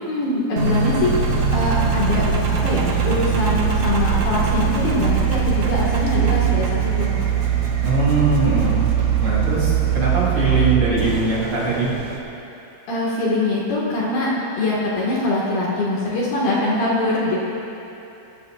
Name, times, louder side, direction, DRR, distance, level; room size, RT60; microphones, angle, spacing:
voice 1, 0.0-7.1 12.9-17.4, left 2 dB, 60° left, -6 dB, 3.4 m, -23 dB
Engine, 0.6-12.2, right 7 dB, 80° right, 1.6 m, -21 dB
voice 2, 7.8-8.9 9.2-11.9, right 2 dB, 40° right, -9 dB, 5.5 m, -21 dB
26.5 x 16.5 x 2.6 m, 2.9 s
omnidirectional pair, 5.4 m